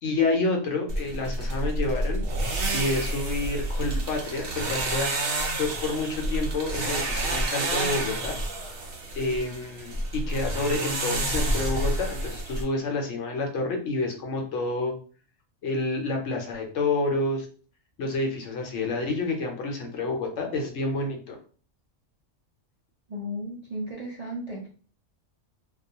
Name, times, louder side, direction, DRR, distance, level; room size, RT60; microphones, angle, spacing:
voice 1, 0.0-2.2 2.7-5.1 5.6-8.4 9.1-14.9 15.6-17.5 18.0-21.4, left 2 dB, 75° left, 2 dB, 0.9 m, -29 dB
sound 1, 0.9-12.6, right 1 dB, 70° right, 0.9 m, -29 dB
voice 2, 23.1-24.7, equal, 50° right, -4 dB, 0.5 m, -34 dB
2.3 x 2.2 x 2.7 m, 0.41 s
omnidirectional pair, 1.3 m